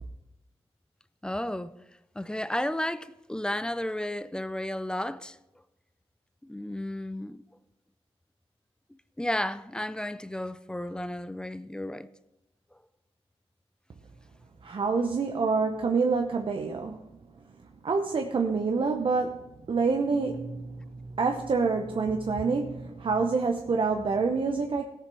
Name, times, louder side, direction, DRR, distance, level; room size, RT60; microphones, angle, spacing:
voice 1, 1.2-1.7 2.2-5.4 6.4-7.4 9.2-12.1, left 1 dB, 10° left, 0.4 m, -33 dB
voice 2, 14.6-17.0 17.8-24.8, right 4 dB, 55° right, 0.8 m, -27 dB
17.0 x 6.9 x 4.7 m
wide cardioid pair, 130°, 11 cm